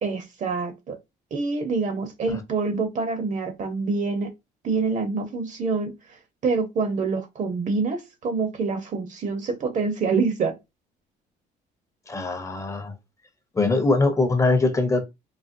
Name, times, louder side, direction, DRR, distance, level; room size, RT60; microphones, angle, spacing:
voice 1, 0.0-1.0 1.3-4.3 4.6-5.9 6.4-10.6, right 4 dB, 45° right, 0.9 m, -26 dB
voice 2, 12.1-12.9 13.5-15.0, left 3 dB, 20° left, 0.7 m, -22 dB
4.1 x 2.0 x 2.6 m
cardioid pair, 110°, 17 cm